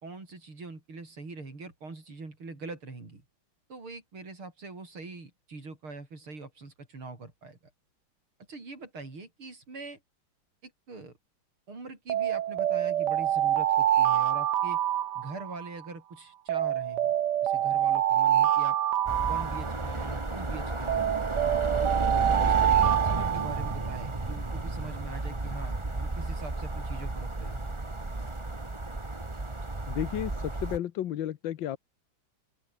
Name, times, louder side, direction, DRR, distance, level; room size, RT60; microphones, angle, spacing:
voice 1, 0.0-3.2 3.7-7.6 8.5-10.0 10.6-11.1 11.7-14.8 15.1-17.2 17.4-18.8 19.2-21.1 21.6-21.7 22.1-27.7, right 3 dB, 85° right, 6.6 m, -43 dB
Alarm, 12.1-15.8 16.5-20.2 20.9-24.1, right 11 dB, 60° right, 1.4 m, -26 dB
sound 1, 19.1-30.8, right 2 dB, 15° right, 1.7 m, -32 dB
voice 2, 29.9-31.8, left 11 dB, 70° left, 1.6 m, -32 dB
open air
omnidirectional pair, 2.3 m